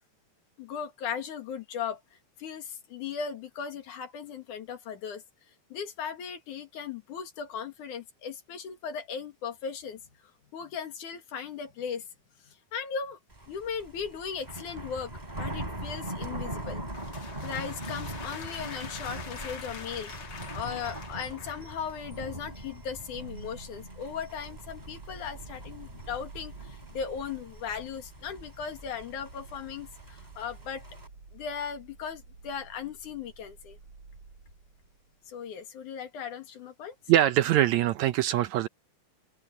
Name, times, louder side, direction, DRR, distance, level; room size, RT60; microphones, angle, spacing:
voice 1, 0.6-2.0 2.4-5.2 5.7-12.1 12.4-13.2 13.5-16.8 17.4-20.1 20.5-30.9 31.3-33.8 35.3-37.0, left 7 dB, 75° left, 3.4 m, -37 dB
Thunder, 13.3-31.1, right 1 dB, 10° right, 4.0 m, -41 dB
sound 1, 16.7-21.8, left 5 dB, 45° left, 3.0 m, -44 dB
sound 2, 23.1-35.3, right 3 dB, 50° right, 6.1 m, -50 dB
voice 2, 37.1-38.7, right 13 dB, 75° right, 1.8 m, -23 dB
open air
omnidirectional pair, 3.6 m